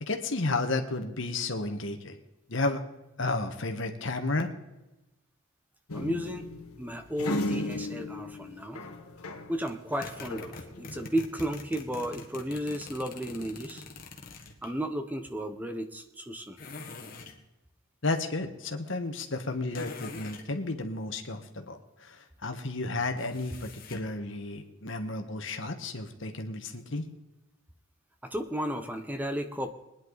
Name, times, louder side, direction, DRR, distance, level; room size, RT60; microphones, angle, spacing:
voice 1, 0.0-2.2 2.5-2.8 3.2-4.5 18.0-27.0, left 2 dB, 60° left, 6 dB, 1.4 m, -32 dB
sound 1, 5.9-9.6 9.9-11.1, left 2 dB, 90° left, 1.3 m, -35 dB
voice 2, 5.9-6.5 6.8-8.8 9.5-13.8 14.6-16.6 28.2-29.7, equal, 10° right, 7 dB, 0.8 m, -33 dB
sound 2, 9.7-14.7 16.6-17.4 19.7-20.5 23.2-24.1, left 3 dB, 40° left, 1.6 m, -44 dB
20.5 x 10.5 x 4.0 m, 1.0 s
head